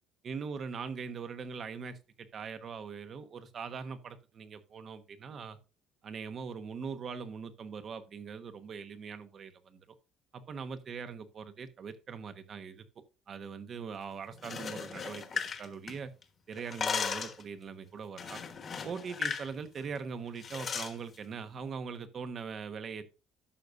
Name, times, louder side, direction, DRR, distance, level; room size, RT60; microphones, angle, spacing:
voice 1, 0.2-5.6 6.0-9.8 10.3-12.8 13.3-16.1 16.5-18.4 18.8-23.0, right 5 dB, 40° right, 10 dB, 1.1 m, -41 dB
sound 1, 14.3-16.2 16.5-17.4 18.2-19.5 19.8-20.0 20.4-20.9, left 6 dB, 35° left, 1.3 m, -36 dB
11.5 x 6.7 x 2.6 m, 0.30 s
cardioid pair, 135°, 0 cm